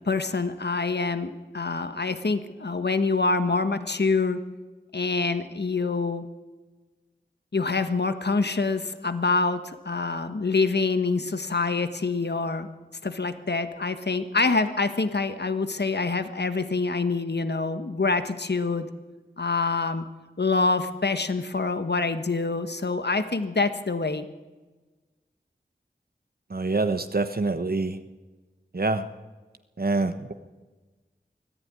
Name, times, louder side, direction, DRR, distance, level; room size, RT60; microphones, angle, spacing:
voice 1, 0.0-4.4 4.9-6.3 7.5-12.7 13.0-18.9 19.4-20.1 20.4-24.3, left 3 dB, 65° left, 10 dB, 1.4 m, -26 dB
voice 2, 26.5-28.0 28.7-29.1 29.8-30.3, right 3 dB, 55° right, 9 dB, 1.2 m, -26 dB
24.0 x 15.5 x 9.7 m, 1.3 s
wide cardioid pair, 50°, 18 cm